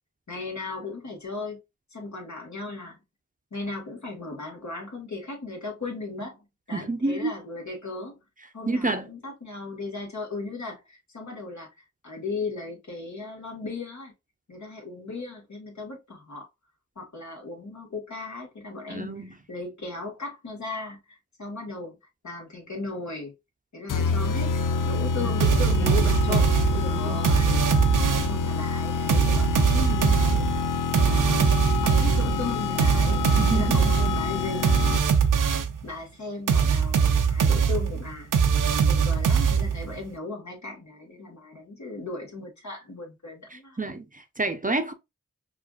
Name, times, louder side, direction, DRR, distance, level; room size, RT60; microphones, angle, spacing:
voice 1, 0.3-1.6 1.9-3.0 3.5-8.2 8.5-11.7 12.0-14.1 14.5-16.5 17.0-22.0 22.2-23.3 23.7-27.6 28.3-30.5 31.0-31.6 31.8-34.8 35.8-38.3 38.9-43.8, left 3 dB, 60° left, 1.7 m, -36 dB
voice 2, 6.7-7.4 8.7-9.1 18.9-19.4 25.2-25.4 25.8-26.0 26.3-26.4 26.9-27.2 33.4-33.8 43.5-44.9, right 2 dB, 25° right, 0.6 m, -29 dB
sound 1, 23.9-35.3, left 4 dB, 80° left, 0.5 m, -27 dB
sound 2, 25.4-28.5 29.1-35.8 36.5-40.0, right 6 dB, 85° right, 0.6 m, -22 dB
4.8 x 2.6 x 2.4 m
cardioid pair, 45°, 31 cm